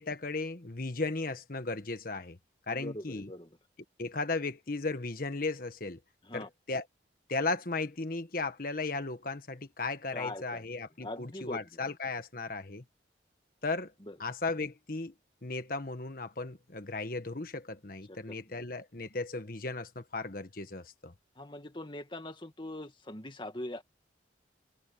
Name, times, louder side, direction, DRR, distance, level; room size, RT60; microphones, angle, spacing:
voice 1, 0.0-2.4 2.7-3.3 4.0-6.0 6.3-6.8 7.3-12.8 13.6-13.9 14.2-15.1 15.4-21.1, left 3 dB, 50° left, 1.4 m, -36 dB
voice 2, 2.7-3.6 6.2-6.5 10.1-10.6 11.0-11.8 14.0-14.2 18.1-18.6 21.4-23.8, left 1 dB, 25° left, 2.0 m, -42 dB
head